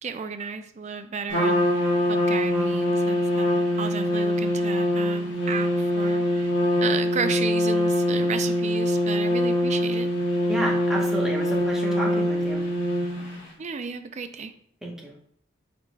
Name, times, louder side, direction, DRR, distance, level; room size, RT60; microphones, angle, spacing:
voice 1, 0.0-6.5 6.8-10.1 13.6-14.5, right 5 dB, 40° right, 9 dB, 0.4 m, -33 dB
Trumpet, 1.3-13.4, equal, 90° left, 1.3 m, -24 dB
voice 2, 10.5-12.6 14.8-15.1, right 1 dB, 5° right, -2 dB, 0.9 m, -31 dB
4.9 x 4.8 x 2.2 m, 0.63 s
head